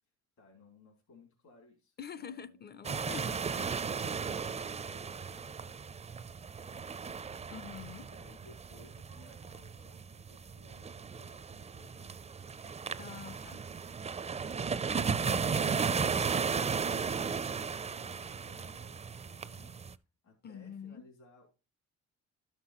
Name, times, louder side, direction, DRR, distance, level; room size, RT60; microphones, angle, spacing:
voice 1, 0.4-2.6 3.0-4.3 4.6-7.0 8.0-12.2 14.3-19.8 20.2-21.5, left 3 dB, 70° left, 3.1 m, -60 dB
voice 2, 2.0-3.7 7.5-8.0 13.0-13.6 15.3-15.7 20.4-21.0, left 7 dB, 35° left, 0.5 m, -46 dB
sound 1, 2.8-19.9, right 5 dB, 20° right, 0.4 m, -35 dB
12.0 x 5.8 x 3.0 m
cardioid pair, 90°, 30 cm